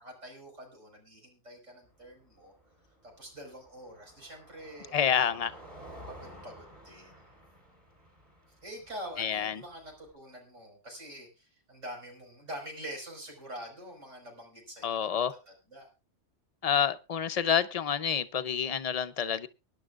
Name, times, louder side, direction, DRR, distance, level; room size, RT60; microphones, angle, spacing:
voice 1, 0.0-2.5 3.0-5.6 6.1-7.2 8.6-15.9, equal, 90° right, 1 dB, 5.3 m, -46 dB
Car passing by, 1.8-10.1, equal, 40° right, 4.6 m, -52 dB
voice 2, 4.9-5.5 9.2-9.6 14.8-15.3 16.6-19.5, left 8 dB, 40° left, 11 dB, 0.6 m, -28 dB
23.5 x 10.5 x 2.4 m, 0.27 s
omnidirectional pair, 1.2 m